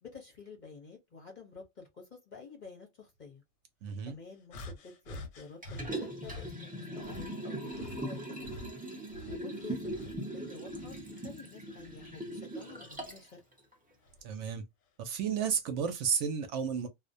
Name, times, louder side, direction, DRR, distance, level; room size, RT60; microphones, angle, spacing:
voice 1, 0.0-3.4 4.0-8.6 9.0-10.0 10.3-13.4, left 4 dB, 45° left, 0.7 m, -50 dB
voice 2, 3.8-4.2 14.2-14.6 15.0-16.9, right 7 dB, 70° right, 0.9 m, -32 dB
sound 1, 4.5-6.5 7.0-10.3 10.7-12.2 12.9-13.1 14.0-14.2, left 2 dB, 80° left, 1.1 m, -47 dB
Liquid, 5.6-13.3 13.7-13.8, right 1 dB, 10° right, 0.4 m, -40 dB
2.4 x 2.1 x 2.5 m
omnidirectional pair, 1.4 m